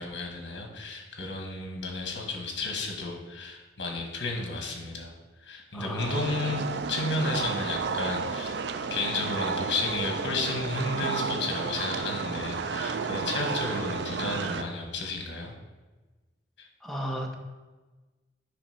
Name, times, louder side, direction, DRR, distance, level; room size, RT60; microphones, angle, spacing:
voice 1, 0.0-5.1 5.4-8.6 8.9-15.5 16.6-16.7, left 2 dB, 75° left, 1 dB, 1.3 m, -32 dB
voice 2, 5.7-6.2 16.8-17.3, equal, ahead, 0 dB, 0.8 m, -34 dB
sound 1, 6.0-14.6, right 5 dB, 65° right, 0.4 m, -32 dB
8.3 x 3.1 x 5.6 m, 1.2 s
head